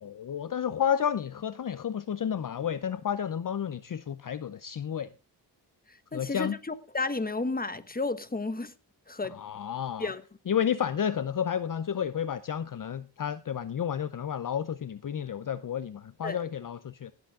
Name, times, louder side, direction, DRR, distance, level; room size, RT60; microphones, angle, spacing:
voice 1, 0.0-5.1 6.1-6.6 9.3-10.1 10.5-17.1, left 8 dB, 50° left, 0.6 m, -31 dB
voice 2, 6.1-8.7 9.1-9.3 10.0-10.2 16.2-16.4, left 3 dB, 20° left, 1.3 m, -32 dB
17.0 x 8.0 x 3.6 m
cardioid pair, 65°, 43 cm